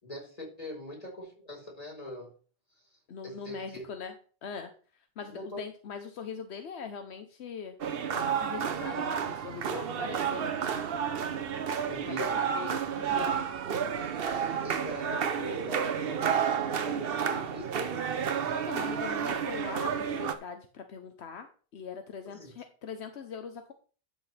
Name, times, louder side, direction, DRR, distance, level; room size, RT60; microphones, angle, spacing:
voice 1, 0.0-2.3 2.8-2.9 3.2-3.8 5.3-5.6 11.9-12.4 14.6-17.8 22.2-22.5, left 1 dB, 35° left, -2 dB, 4.5 m, -42 dB
voice 2, 3.1-4.1 4.4-4.7 5.2-7.8 8.1-10.5 12.0-13.5 18.6-21.5 21.7-23.7, left 6 dB, 85° left, 7 dB, 1.1 m, -41 dB
sound 1, 7.8-20.3, right 7 dB, 65° right, 0.9 m, -31 dB
12.5 x 6.4 x 3.3 m, 0.39 s
omnidirectional pair, 1.1 m